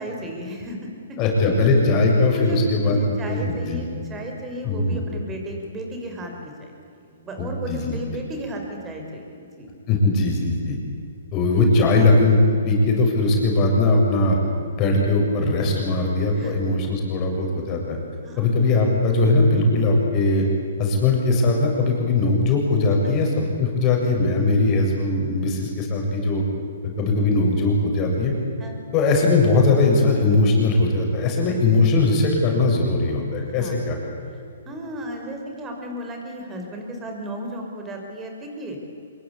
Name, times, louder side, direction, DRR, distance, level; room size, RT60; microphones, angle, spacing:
voice 1, 0.0-1.2 2.3-6.7 7.1-9.7 16.3-16.5 18.2-18.5 28.6-28.8 33.5-33.8 34.6-38.9, right 1 dB, 15° right, 2 dB, 5.9 m, -34 dB
voice 2, 1.2-3.0 3.3-3.8 4.6-5.0 7.4-8.0 9.9-10.8 11.3-14.4 14.7-18.0 18.4-20.5 20.8-26.4 27.0-28.3 28.9-34.0, left 2 dB, 30° left, 0 dB, 7.4 m, -20 dB
25.5 x 22.5 x 8.7 m, 2.5 s
hypercardioid pair, 140°, 0 cm